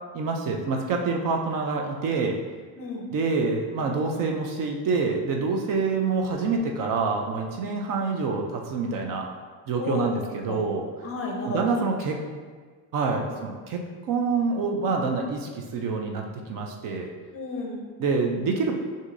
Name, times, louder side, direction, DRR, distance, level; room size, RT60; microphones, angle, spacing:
voice 1, 0.1-2.4 3.1-9.3 9.7-10.9 11.4-12.2 12.9-16.2 16.5-17.1 18.0-18.8, right 4 dB, 45° right, 2 dB, 0.5 m, -26 dB
voice 2, 11.0-11.8 17.3-17.8, left 3 dB, 30° left, 0 dB, 0.6 m, -32 dB
6.1 x 2.7 x 2.5 m, 1.5 s
cardioid pair, 140°, 46 cm